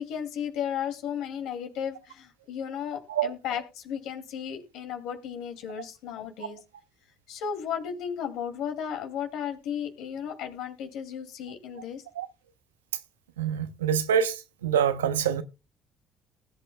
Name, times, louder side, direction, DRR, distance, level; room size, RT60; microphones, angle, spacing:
voice 1, 0.0-6.6 7.3-12.0, left 8 dB, 70° left, 2.4 m, -34 dB
voice 2, 13.4-14.4 14.6-15.4, right 8 dB, 90° right, 0.8 m, -25 dB
19.0 x 8.6 x 2.2 m
hypercardioid pair, 55°, 0 cm